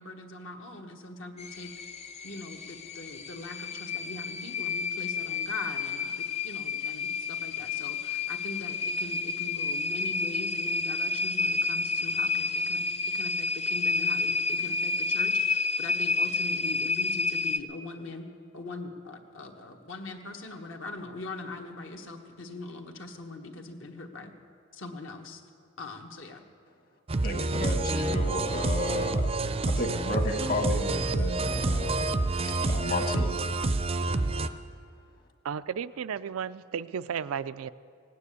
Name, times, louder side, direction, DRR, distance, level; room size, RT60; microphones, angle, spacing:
voice 1, 0.0-1.7 2.2-12.8 13.1-18.3 18.5-24.3 24.7-25.4 25.8-26.4, left 2 dB, 65° left, 3 dB, 1.4 m, -41 dB
sound 1, 1.4-17.6, left 4 dB, 30° left, 0.5 m, -30 dB
sound 2, 27.1-34.5, right 2 dB, 30° right, 0.5 m, -28 dB
voice 2, 27.2-29.3 29.6-32.0 32.4-33.4, left 1 dB, 45° left, 4 dB, 1.5 m, -32 dB
voice 3, 35.4-37.7, right 7 dB, 90° right, 16 dB, 0.4 m, -33 dB
18.0 x 9.5 x 8.3 m, 2.3 s
head